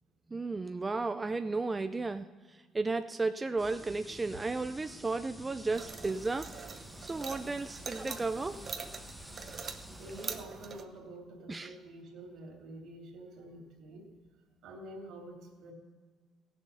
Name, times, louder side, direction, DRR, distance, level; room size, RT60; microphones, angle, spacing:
voice 1, 0.3-6.5 7.0-8.6 11.5-11.7, right 3 dB, 15° right, 8 dB, 0.4 m, -34 dB
sound 1, 3.6-10.4, left 1 dB, 5° left, 0.8 m, -50 dB
sound 2, 5.7-10.8, right 5 dB, 35° right, 0.9 m, -44 dB
voice 2, 9.9-14.1 14.6-15.7, right 1 dB, 70° right, 1 dB, 3.0 m, -47 dB
16.5 x 7.1 x 5.5 m, 1.5 s
cardioid pair, 130°, 0 cm